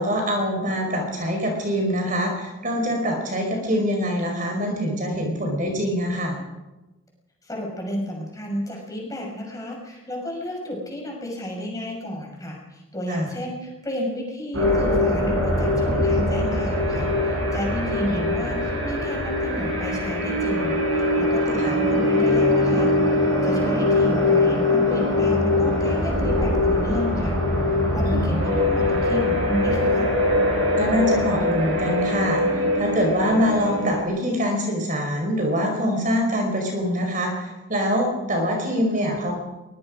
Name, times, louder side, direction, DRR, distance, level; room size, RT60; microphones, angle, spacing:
voice 1, 0.0-6.4 13.1-13.3 18.1-18.2 21.6-21.8 28.0-28.4 30.8-39.3, equal, 40° right, 2 dB, 4.9 m, -24 dB
voice 2, 7.4-22.9 23.4-27.4 27.6-30.1, equal, 15° left, 0 dB, 6.1 m, -31 dB
sound 1, 14.5-34.0, left 1 dB, 80° right, 7.8 m, -22 dB
23.5 x 21.0 x 5.3 m, 1.1 s
head